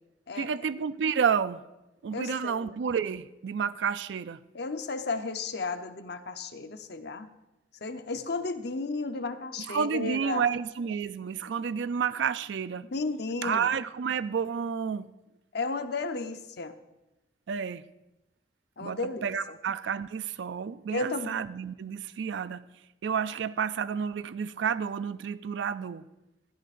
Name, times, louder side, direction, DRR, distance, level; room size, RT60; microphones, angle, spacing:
voice 1, 0.3-1.6 2.0-4.4 9.7-12.9 13.4-15.1 17.5-17.8 18.8-22.6 23.0-26.0, right 7 dB, 70° right, 0.4 m, -30 dB
voice 2, 2.1-2.7 4.5-7.3 7.8-10.5 12.9-13.7 15.5-16.8 18.8-19.6 20.9-21.3, left 3 dB, 65° left, 0.8 m, -33 dB
15.5 x 14.0 x 2.5 m
head